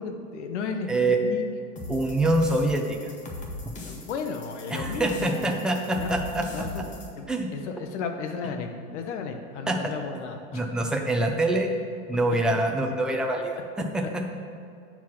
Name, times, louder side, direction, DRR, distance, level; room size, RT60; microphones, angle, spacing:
voice 1, 0.0-1.5 3.8-6.2 6.5-10.6 14.0-14.1, left 5 dB, 80° left, 6 dB, 1.1 m, -34 dB
voice 2, 0.9-1.2 1.9-3.0 4.7-6.9 7.3-7.5 9.7-9.9 10.5-11.7 12.1-14.4, right 2 dB, ahead, 1 dB, 0.4 m, -25 dB
sound 1, 1.8-7.1, left 2 dB, 20° left, 1.1 m, -39 dB
9.1 x 4.7 x 5.8 m, 2.3 s
supercardioid pair, 145°, 35 cm